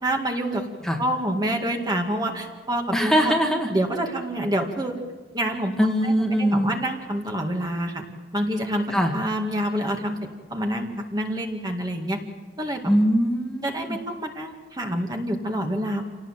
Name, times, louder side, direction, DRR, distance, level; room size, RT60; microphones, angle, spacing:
voice 1, 0.0-3.3 3.7-5.0 5.3-5.8 6.0-8.0 8.3-12.2 12.6-12.9 13.6-16.0, right 1 dB, 20° right, 2 dB, 2.1 m, -27 dB
voice 2, 2.9-3.7 5.8-6.7 8.9-9.1 12.9-13.7, equal, 5° left, 1 dB, 1.9 m, -21 dB
28.0 x 18.5 x 7.5 m, 1.3 s
head